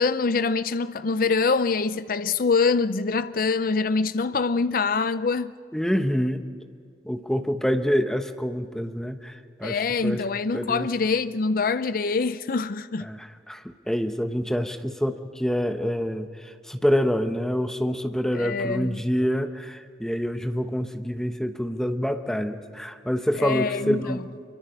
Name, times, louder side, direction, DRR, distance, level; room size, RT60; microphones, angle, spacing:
voice 1, 0.0-5.5 9.6-13.1 18.3-19.0 23.4-24.2, left 4 dB, 50° left, 0.5 m, -24 dB
voice 2, 5.7-6.4 7.0-10.2 10.5-10.9 13.1-24.2, equal, 5° left, 1.0 m, -26 dB
25.5 x 24.0 x 5.4 m
head